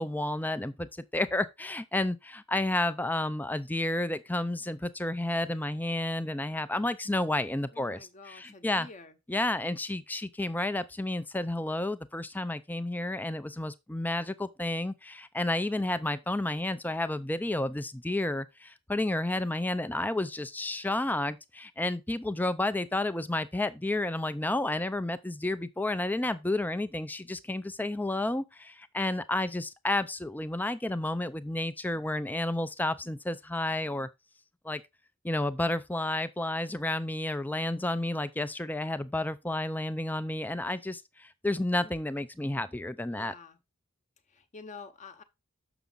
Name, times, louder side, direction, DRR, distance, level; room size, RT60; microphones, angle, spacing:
voice 1, 0.0-8.9 9.3-34.1 34.6-34.8 35.2-43.3, left 1 dB, 10° left, 0.4 m, -31 dB
voice 2, 7.7-9.2 43.1-43.6 44.3-45.2, left 4 dB, 35° left, 0.9 m, -48 dB
6.9 x 6.2 x 3.9 m
head